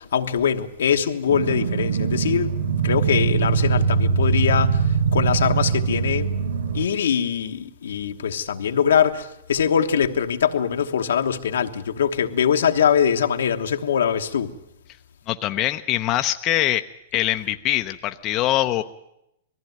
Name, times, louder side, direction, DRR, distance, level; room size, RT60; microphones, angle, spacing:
voice 1, 0.0-2.5 2.8-6.3 6.7-14.5, left 8 dB, 85° left, 1.3 m, -22 dB
sound 1, 1.3-6.9, right 5 dB, 80° right, 1.3 m, -22 dB
voice 2, 15.3-16.8 17.1-18.8, left 14 dB, 35° left, 0.7 m, -23 dB
19.5 x 15.0 x 9.2 m
hypercardioid pair, 135°, 0 cm